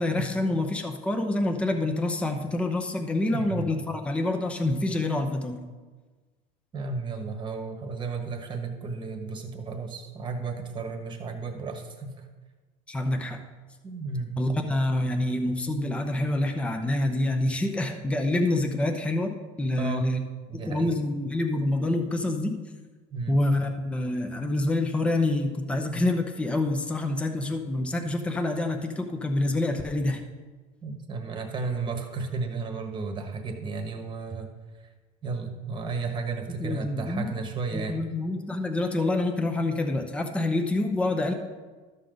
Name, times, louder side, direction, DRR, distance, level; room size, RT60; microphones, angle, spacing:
voice 1, 0.0-5.6 12.9-13.4 14.4-20.2 20.5-22.6 23.3-30.2 36.6-37.4 37.7-41.3, left 2 dB, 5° left, 4 dB, 0.7 m, -27 dB
voice 2, 3.3-3.7 6.7-12.2 13.8-14.3 19.8-20.1 20.5-21.0 23.1-23.3 30.8-34.5 35.2-38.2, right 4 dB, 25° right, 5 dB, 1.3 m, -33 dB
13.0 x 6.4 x 3.9 m, 1.3 s
cardioid pair, 140°, 18 cm